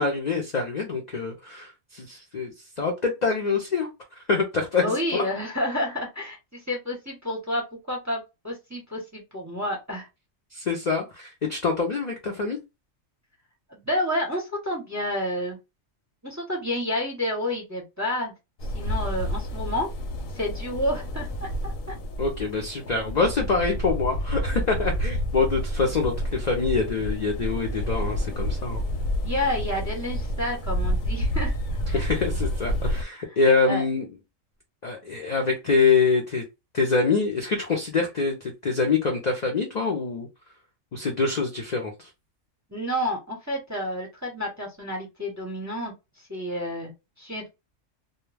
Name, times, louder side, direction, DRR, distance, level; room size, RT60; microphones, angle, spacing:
voice 1, 0.0-3.9 4.2-4.8 5.1-5.2 10.5-12.6 22.2-28.8 31.9-34.1 34.8-36.4 36.7-40.3 40.9-42.1, left 4 dB, 55° left, 0.4 m, -25 dB
voice 2, 4.8-10.1 13.7-15.6 16.2-18.3 18.7-19.9 20.3-21.9 29.2-31.5 31.9-32.1 33.3-33.4 33.6-33.8 42.7-46.9 47.2-47.5, left 1 dB, 20° right, 0.6 m, -30 dB
sound 1, 18.6-33.0, equal, 90° left, 1.0 m, -29 dB
2.2 x 2.2 x 3.2 m
omnidirectional pair, 1.4 m